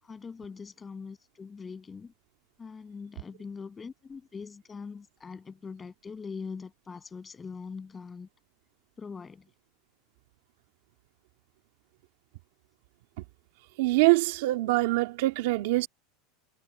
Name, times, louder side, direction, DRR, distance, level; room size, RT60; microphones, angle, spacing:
voice 1, 0.0-2.1 2.6-8.3 9.0-9.5, left 5 dB, 15° left, 7.9 m, -42 dB
voice 2, 13.8-15.9, right 20 dB, 70° right, 2.3 m, -24 dB
supercardioid pair, 160°, 0 cm